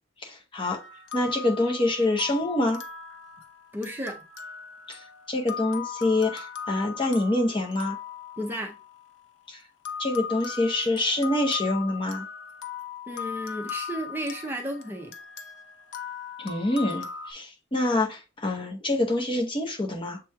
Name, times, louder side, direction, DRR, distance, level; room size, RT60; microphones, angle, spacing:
voice 1, 0.2-0.8 1.1-2.8 4.9-5.0 5.3-8.0 9.5-9.6 10.0-12.3 16.4-20.2, left 2 dB, 25° left, 0.7 m, -26 dB
sound 1, 0.6-9.3 9.9-17.3, left 7 dB, 80° left, 0.7 m, -39 dB
voice 2, 3.7-4.2 8.4-8.7 13.1-15.1, equal, 10° right, 0.5 m, -33 dB
7.5 x 3.0 x 2.2 m
head